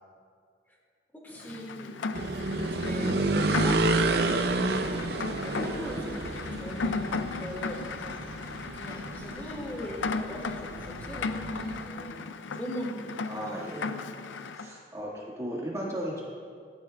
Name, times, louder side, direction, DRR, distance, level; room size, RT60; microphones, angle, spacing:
voice 1, 1.1-2.0 2.6-4.6 5.4-8.2 8.7-13.9, equal, 10° left, -3 dB, 2.1 m, -40 dB
Rain, 1.4-14.7, left 4 dB, 90° left, 0.5 m, -36 dB
sound 1, 2.1-11.9, right 2 dB, 60° right, 0.6 m, -30 dB
voice 2, 13.3-13.8 14.5-16.2, equal, 15° right, -4 dB, 1.8 m, -36 dB
16.0 x 13.5 x 2.3 m, 2.2 s
head